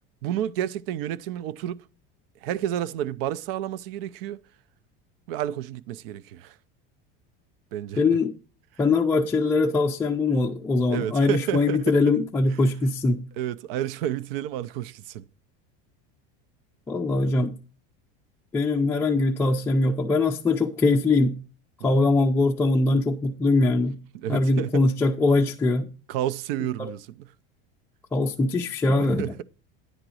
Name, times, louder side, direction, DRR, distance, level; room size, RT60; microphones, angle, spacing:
voice 1, 0.2-1.8 2.4-4.4 5.3-6.6 7.7-8.0 10.9-11.8 13.4-15.2 21.8-22.0 24.1-24.8 26.1-27.3 29.0-29.4, right 11 dB, 75° right, 0.6 m, -30 dB
voice 2, 8.0-8.3 8.8-13.2 16.9-17.5 18.5-21.3 21.8-24.0 24.3-25.9 26.8-26.9 28.1-29.3, left 3 dB, 10° left, 0.4 m, -22 dB
10.0 x 3.9 x 6.2 m
supercardioid pair, 150°, 29 cm